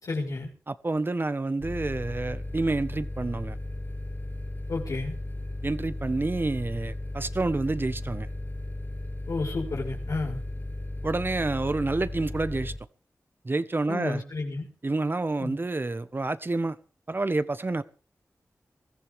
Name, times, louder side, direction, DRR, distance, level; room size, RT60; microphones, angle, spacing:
voice 1, 0.0-0.5 4.7-5.2 9.3-10.4 13.9-14.7 15.4-15.6, left 3 dB, 85° left, 5.4 m, -31 dB
voice 2, 0.7-3.5 5.6-8.3 11.0-12.7 13.4-14.2 14.8-16.8 17.1-17.8, right 2 dB, 40° right, 1.4 m, -28 dB
sound 1, 1.6-12.8, left 1 dB, 35° left, 4.5 m, -35 dB
22.0 x 15.0 x 3.7 m
cardioid pair, 55°, 6 cm